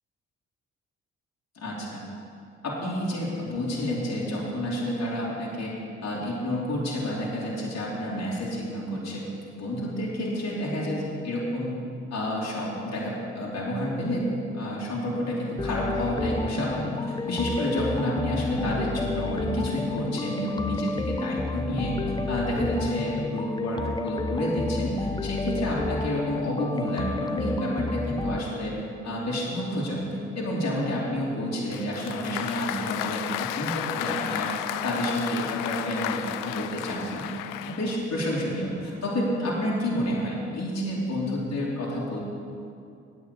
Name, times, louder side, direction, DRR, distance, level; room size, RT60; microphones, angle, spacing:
voice 1, 1.5-2.0 2.6-5.7 6.0-9.3 9.6-11.8 12.1-21.9 22.3-28.7 29.0-37.3 37.6-42.2, equal, 50° left, -5 dB, 2.9 m, -29 dB
sound 1, 15.6-28.4, left 3 dB, 15° left, 0.7 m, -31 dB
Applause, 31.7-38.1, left 12 dB, 75° left, 0.5 m, -33 dB
9.2 x 6.4 x 8.4 m, 2.5 s
hypercardioid pair, 45°, 33 cm